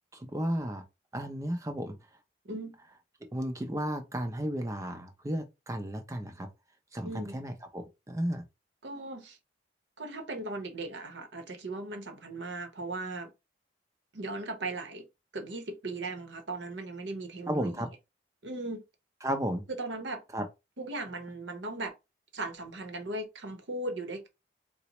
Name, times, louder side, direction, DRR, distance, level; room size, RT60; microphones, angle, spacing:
voice 1, 0.1-0.8 1.1-1.9 3.2-6.5 6.9-8.4 17.5-17.9 19.2-19.6 20.3-20.5, equal, 15° right, 0.5 m, -33 dB
voice 2, 7.0-7.4 8.8-9.4 10.0-13.3 14.1-15.0 15.3-17.9 18.4-18.8 19.7-20.2 20.8-21.9 22.3-24.3, right 2 dB, 90° right, 0.9 m, -38 dB
4.0 x 2.0 x 2.9 m
head